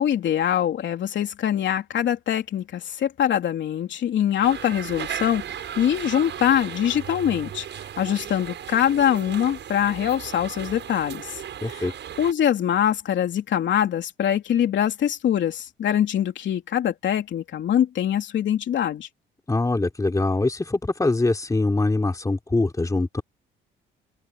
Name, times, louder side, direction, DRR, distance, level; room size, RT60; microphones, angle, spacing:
voice 1, 0.0-5.4 5.8-7.6 8.0-11.4 11.7-19.1, left 10 dB, 70° left, 3.2 m, -23 dB
sound 1, 4.4-12.3, right 9 dB, 65° right, 7.3 m, -36 dB
voice 2, 11.6-11.9 19.5-23.2, left 2 dB, 15° left, 3.2 m, -23 dB
open air
cardioid pair, 90°, 20 cm